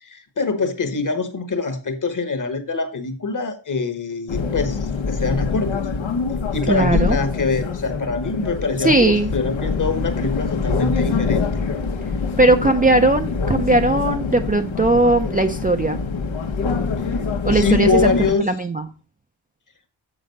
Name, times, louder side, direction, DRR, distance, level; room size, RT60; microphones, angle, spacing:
voice 1, 0.0-5.9 6.5-11.4 17.5-18.5, left 4 dB, 45° left, 10 dB, 1.2 m, -24 dB
sound 1, 4.3-18.3, left 4 dB, 90° left, 1.2 m, -24 dB
voice 2, 6.7-7.2 8.8-9.3 12.4-16.0 17.4-18.1 18.4-18.9, right 2 dB, 20° right, 6 dB, 0.4 m, -18 dB
7.3 x 6.0 x 5.2 m, 0.33 s
wide cardioid pair, 175°, 45 cm